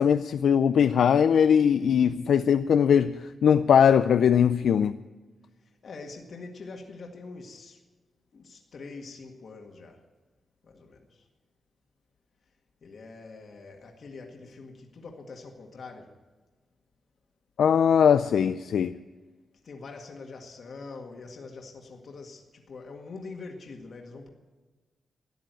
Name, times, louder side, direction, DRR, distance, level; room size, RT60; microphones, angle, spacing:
voice 1, 0.0-5.0 17.6-19.0, left 8 dB, 85° left, 0.4 m, -21 dB
voice 2, 5.6-7.8 8.3-10.0 10.6-11.3 12.8-16.1 19.6-24.3, left 3 dB, 60° left, 1.9 m, -44 dB
14.0 x 10.0 x 9.1 m
wide cardioid pair, 115°, 0 cm